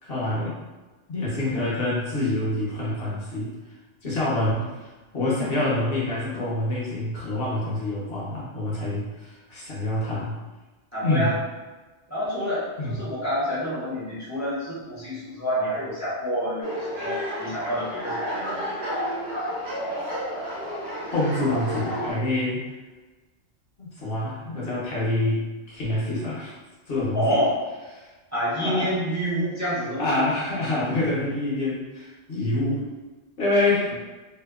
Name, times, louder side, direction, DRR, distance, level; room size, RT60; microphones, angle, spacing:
voice 1, 0.0-0.5 1.1-3.5 4.0-4.7 5.1-10.4 11.0-11.3 12.8-13.1 14.5-14.6 21.1-22.6 23.8-26.6 26.9-27.4 27.9-28.1 28.6-28.9 30.0-32.9 33.4-33.9, left 2 dB, 55° left, -7 dB, 0.9 m, -26 dB
voice 2, 10.9-11.3 12.1-18.6 21.4-21.6 27.1-27.6 28.3-30.2 33.9-34.0, equal, 20° right, -10 dB, 0.6 m, -28 dB
sound 1, 16.6-22.1, equal, 65° right, 1.1 m, -31 dB
2.7 x 2.1 x 2.2 m, 1.2 s
omnidirectional pair, 1.2 m